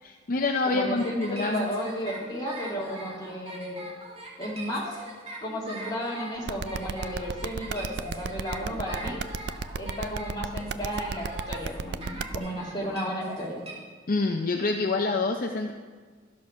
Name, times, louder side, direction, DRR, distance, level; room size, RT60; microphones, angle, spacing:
voice 1, 0.0-1.7 14.1-15.7, left 3 dB, 45° left, 4 dB, 0.5 m, -27 dB
voice 2, 0.6-3.9 4.4-5.0 5.4-9.2 9.8-13.6, equal, 20° left, -3 dB, 2.2 m, -33 dB
sound 1, 1.0-13.7, right 2 dB, 30° right, 2.1 m, -41 dB
sound 2, 6.5-12.4, right 5 dB, 60° right, 0.4 m, -32 dB
13.0 x 6.5 x 5.6 m, 1.5 s
head